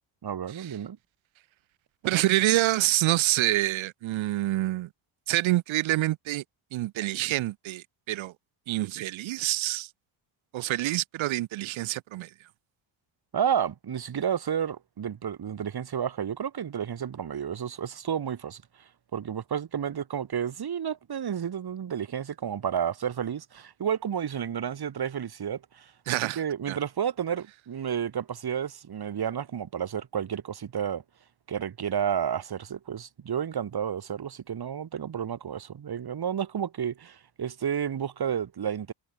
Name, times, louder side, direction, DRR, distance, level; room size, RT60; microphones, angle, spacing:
voice 1, 0.2-1.0 13.3-18.6 19.1-25.9 26.2-31.0 31.5-38.9, right 8 dB, 55° right, 6.4 m, -31 dB
voice 2, 2.0-4.9 5.3-6.4 6.7-8.3 8.7-9.9 10.5-12.3 26.1-26.8, right 16 dB, 90° right, 1.8 m, -27 dB
cardioid pair, 95°, 45 cm